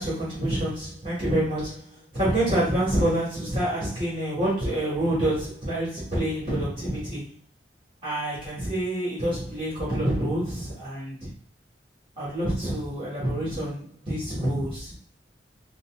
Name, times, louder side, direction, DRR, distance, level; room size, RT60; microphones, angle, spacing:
voice 1, 0.0-7.3 8.0-11.3 12.2-14.9, right 1 dB, 30° right, -8 dB, 1.5 m, -27 dB
5.3 x 2.0 x 2.4 m, 0.43 s
head